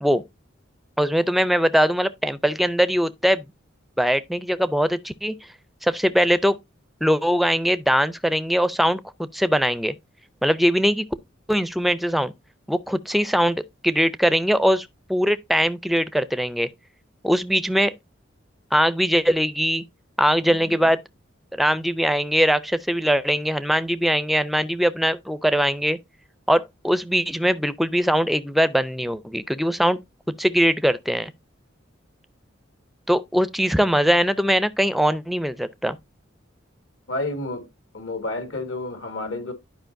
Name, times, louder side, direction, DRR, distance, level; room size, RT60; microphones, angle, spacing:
voice 1, 1.0-3.4 4.0-5.4 5.8-6.6 7.0-9.0 9.3-9.9 10.4-11.1 11.5-12.3 12.7-16.7 17.2-17.9 18.7-19.8 20.2-21.0 21.5-26.0 26.5-30.0 30.4-31.3 33.1-36.0, equal, ahead, 0.4 m, -21 dB
voice 2, 37.1-37.7 37.9-39.5, left 2 dB, 75° left, 1.7 m, -30 dB
11.5 x 5.1 x 2.6 m
head